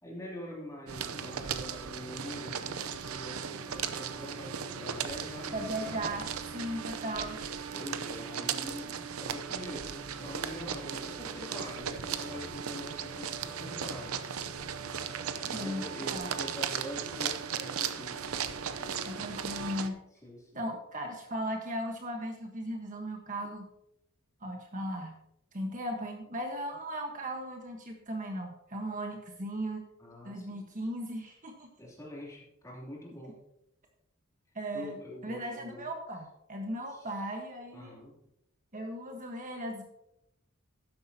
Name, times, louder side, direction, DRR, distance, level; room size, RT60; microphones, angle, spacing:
voice 1, 0.0-6.1 7.7-14.2 15.4-18.2 18.8-19.0 20.2-20.6 30.0-30.6 31.8-33.4 34.7-35.9 36.9-37.0 37.7-38.2, left 1 dB, 15° left, -4 dB, 3.1 m, -44 dB
sound 1, 0.9-19.9, right 7 dB, 80° right, 0.7 m, -37 dB
voice 2, 5.5-6.3 6.5-7.4 15.5-16.3 19.0-20.0 20.5-23.7 24.4-25.2 25.5-29.8 30.2-31.7 34.5-35.0 35.2-37.9 38.7-39.8, equal, 40° right, 3 dB, 1.3 m, -37 dB
12.5 x 10.5 x 2.9 m, 0.81 s
head